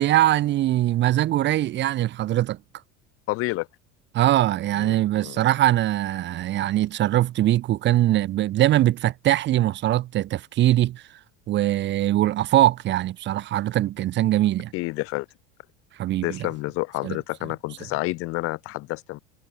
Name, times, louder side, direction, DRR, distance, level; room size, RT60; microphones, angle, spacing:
voice 1, 0.0-2.6 4.1-11.0 11.5-14.7 16.0-16.5 17.0-17.2, right 14 dB, 35° right, 2.2 m, -22 dB
voice 2, 3.3-3.7 4.8-5.0 5.2-5.4 14.7-15.3 16.2-19.2, left 21 dB, 45° left, 1.0 m, -29 dB
cardioid pair, 170°, 31 cm